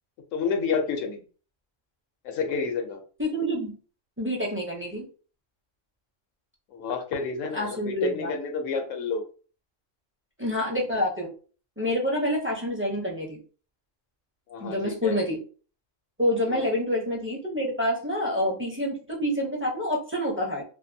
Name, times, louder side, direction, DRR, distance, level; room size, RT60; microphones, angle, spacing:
voice 1, 0.3-1.2 2.2-3.0 6.7-9.2 14.5-15.2 16.5-16.7, left 5 dB, 80° left, 4 dB, 1.0 m, -29 dB
voice 2, 3.2-3.7 4.2-5.1 7.5-8.3 10.4-11.3 11.8-13.4 14.6-15.4 16.2-20.6, equal, 20° right, -2 dB, 0.4 m, -27 dB
2.6 x 2.5 x 2.6 m, 0.38 s
omnidirectional pair, 1.3 m